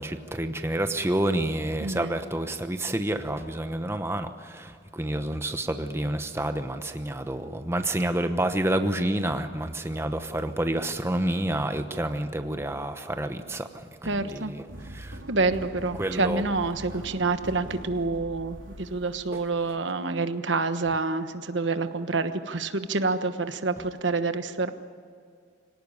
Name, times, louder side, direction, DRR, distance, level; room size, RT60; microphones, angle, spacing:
voice 1, 0.0-14.7 14.9-15.2 16.0-16.4 16.9-17.0 19.3-19.4, right 1 dB, 15° right, 7 dB, 1.0 m, -29 dB
voice 2, 1.8-2.2 14.0-14.5 15.3-24.7, right 3 dB, 75° right, 10 dB, 1.2 m, -27 dB
sound 1, 14.7-19.9, right 1 dB, 90° right, 3.2 m, -43 dB
25.5 x 18.0 x 9.8 m, 2.2 s
head